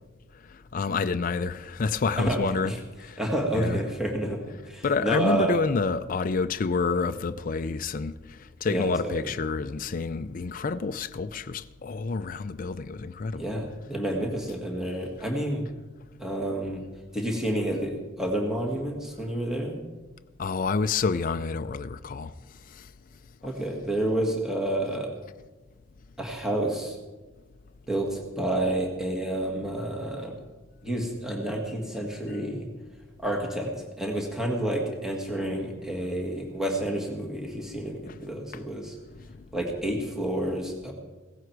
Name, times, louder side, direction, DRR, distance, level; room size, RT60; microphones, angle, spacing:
voice 1, 0.7-2.7 3.0-3.2 3.5-3.8 4.8-13.4 20.4-22.3 22.7-22.9 38.1-38.2, left 4 dB, 40° left, 0.4 m, -28 dB
voice 2, 3.2-4.4 4.7-5.6 8.7-9.1 13.3-15.7 16.2-16.8 17.1-19.8 23.4-25.1 26.2-27.0 27.9-30.4 30.8-32.7 33.2-33.7 34.0-39.0 39.5-40.9, right 1 dB, ahead, 1.9 m, -29 dB
17.0 x 15.0 x 4.7 m
head